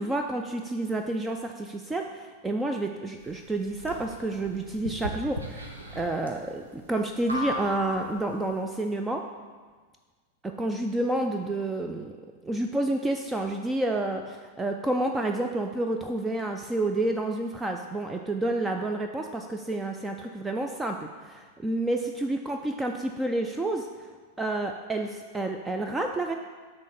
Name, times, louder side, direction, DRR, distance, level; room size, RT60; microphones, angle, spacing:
voice 1, 0.0-9.2 10.4-12.1 12.4-23.9 24.4-26.4, right 2 dB, 10° right, 4 dB, 0.4 m, -29 dB
sound 1, 3.2-8.5, equal, 75° right, 0.8 m, -37 dB
6.2 x 3.8 x 5.8 m, 1.5 s
figure-of-eight pair, 90°, 0 cm